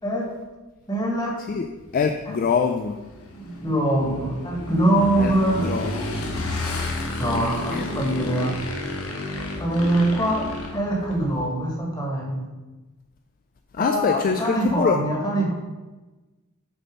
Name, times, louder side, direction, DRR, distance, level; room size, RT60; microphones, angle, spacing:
voice 1, 0.9-1.4 3.4-5.7 7.2-8.5 9.6-10.4 10.7-12.4 13.8-15.5, right 1 dB, 20° left, -3 dB, 1.8 m, -23 dB
Motorcycle / Engine, 1.8-11.5, left 2 dB, 75° left, 1.1 m, -32 dB
voice 2, 1.9-3.0 5.2-5.3 5.6-6.0 7.7-7.9 13.7-15.0, left 5 dB, 40° left, 7 dB, 0.3 m, -24 dB
6.5 x 4.2 x 5.3 m, 1.2 s
head